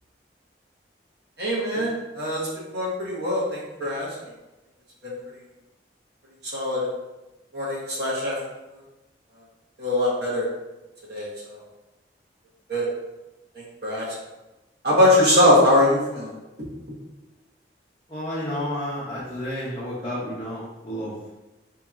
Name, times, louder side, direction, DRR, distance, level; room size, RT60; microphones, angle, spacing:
voice 1, 1.4-4.1 5.0-5.1 6.5-6.9 7.5-8.4 9.8-10.4 11.1-11.3 12.7-12.9 13.5-14.1 14.8-16.3, left 1 dB, 60° right, -6 dB, 1.1 m, -22 dB
voice 2, 18.1-21.1, equal, 20° left, -13 dB, 0.8 m, -31 dB
4.2 x 2.9 x 2.4 m, 1.0 s
head